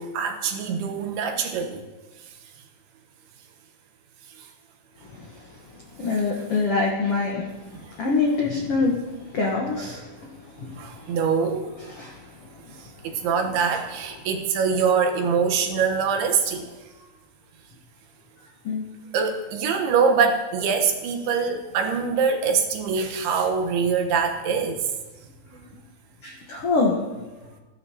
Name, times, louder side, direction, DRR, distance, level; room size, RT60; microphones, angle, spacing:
voice 1, 0.0-1.8 2.2-2.3 4.4-4.5 7.7-7.9 10.8-11.7 12.7-16.7 19.1-24.8 26.6-26.7, right 6 dB, 85° right, 4 dB, 3.1 m, -24 dB
voice 2, 5.1-5.4 6.0-10.2 10.6-11.1 11.9-12.2 18.6-18.8 25.5-25.6 26.2-27.0, left 3 dB, 75° left, -1 dB, 1.3 m, -25 dB
16.0 x 11.0 x 2.8 m, 1.2 s
omnidirectional pair, 4.5 m